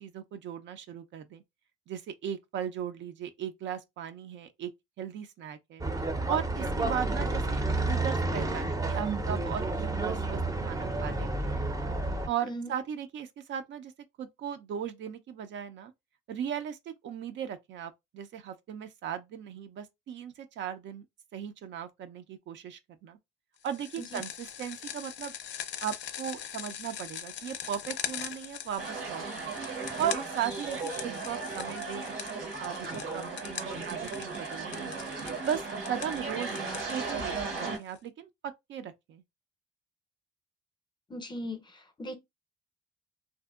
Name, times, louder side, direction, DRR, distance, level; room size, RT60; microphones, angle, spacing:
voice 1, 0.0-1.4 1.9-4.7 5.0-5.8 6.3-11.7 12.3-13.9 14.2-15.9 16.3-21.0 21.3-23.2 23.6-25.3 25.8-29.5 30.0-35.0 35.4-36.6 36.9-38.3 38.7-39.2, right 9 dB, 65° right, 0.5 m, -37 dB
sound 1, 5.8-12.3, right 2 dB, 15° right, 0.5 m, -30 dB
sound 2, 23.6-38.0, left 9 dB, 65° left, 0.4 m, -42 dB
sound 3, 28.8-37.8, right 4 dB, 90° right, 1.2 m, -36 dB
voice 2, 41.1-41.6 42.0-42.2, equal, 20° left, 0.6 m, -37 dB
2.6 x 2.1 x 2.3 m
cardioid pair, 90°, 20 cm